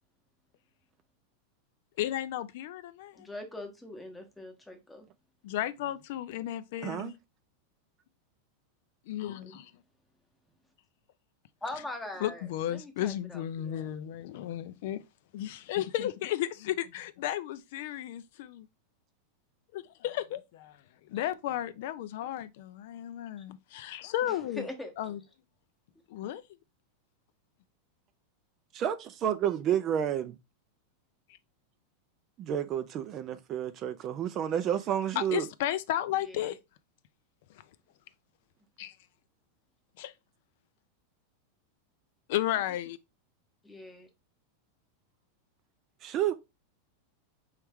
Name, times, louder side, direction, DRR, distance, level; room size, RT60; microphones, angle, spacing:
voice 1, 2.0-3.3 5.4-7.2 9.1-9.7 12.2-15.0 15.3-18.7 19.7-20.8 21.1-24.7 25.0-25.2 26.1-26.4 35.2-36.6 38.8-38.9 40.0-40.1 42.3-43.0, left 12 dB, 55° left, 0.4 m, -34 dB
voice 2, 3.2-5.1 9.2-9.6 11.6-13.9 24.2-24.9 36.2-36.5 43.6-44.1, left 1 dB, 5° left, 0.9 m, -42 dB
voice 3, 6.8-7.1 28.7-30.4 32.4-35.5 46.0-46.3, right 10 dB, 30° right, 0.3 m, -30 dB
4.6 x 3.1 x 3.4 m
supercardioid pair, 165°, 0 cm